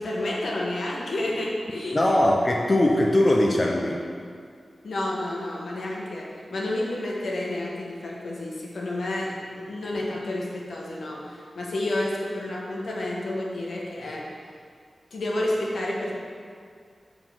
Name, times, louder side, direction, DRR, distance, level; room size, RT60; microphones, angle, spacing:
voice 1, 0.0-2.0 4.8-14.2 15.1-16.1, left 1 dB, 85° left, -3 dB, 1.3 m, -30 dB
voice 2, 1.9-4.0, left 1 dB, 35° left, 0 dB, 0.6 m, -20 dB
7.2 x 3.9 x 6.0 m, 2.2 s
wide cardioid pair, 80°, 0 cm